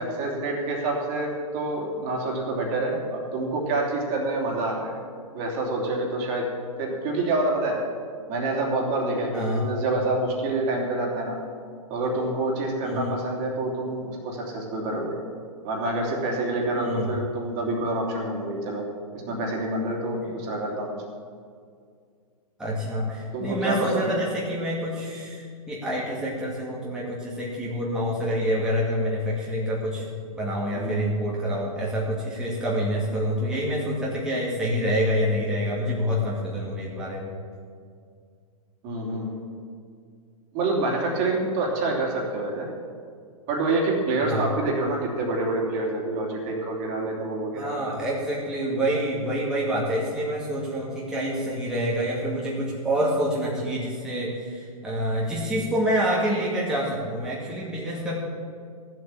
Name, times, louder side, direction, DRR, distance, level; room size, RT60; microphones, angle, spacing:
voice 1, 0.0-4.9 5.3-6.5 6.8-7.8 8.3-11.4 11.9-15.1 15.6-18.8 19.3-21.0 23.3-24.2 30.7-31.1 38.8-39.3 40.5-42.7 43.5-47.7, right 2 dB, 35° right, -1 dB, 3.1 m, -27 dB
voice 2, 9.3-9.7 12.8-13.2 16.7-17.1 22.6-30.1 30.3-37.3 44.2-44.5 47.5-58.2, equal, 5° right, -6 dB, 2.4 m, -27 dB
14.5 x 7.7 x 7.5 m, 2.2 s
hypercardioid pair, 130°, 19 cm